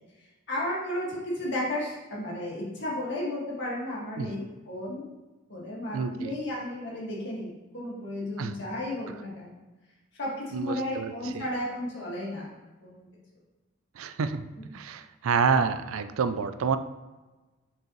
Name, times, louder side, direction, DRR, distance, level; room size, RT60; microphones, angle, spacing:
voice 1, 0.5-5.0 5.5-9.6 10.2-13.1, left 1 dB, 55° left, -5 dB, 1.9 m, -33 dB
voice 2, 5.9-6.4 8.4-8.5 10.5-11.4 14.0-14.5 14.7-16.8, right 5 dB, 80° right, 11 dB, 0.4 m, -28 dB
6.5 x 4.7 x 3.1 m, 1.2 s
head